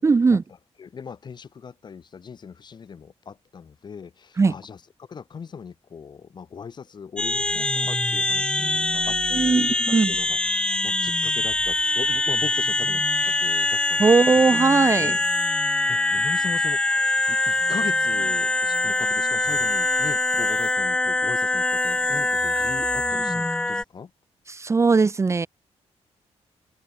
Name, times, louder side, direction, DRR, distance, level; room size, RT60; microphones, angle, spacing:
voice 1, 0.0-0.4 4.4-4.5 9.3-10.2 14.0-15.1 24.5-25.5, right 4 dB, 25° right, 1.2 m, -19 dB
voice 2, 0.8-10.4 10.8-14.0 14.9-15.2 15.9-16.8 17.3-24.1, left 6 dB, 40° left, 2.5 m, -39 dB
sound 1, 7.2-23.8, left 2 dB, 10° left, 0.4 m, -23 dB
wide cardioid pair, 170°, 12 cm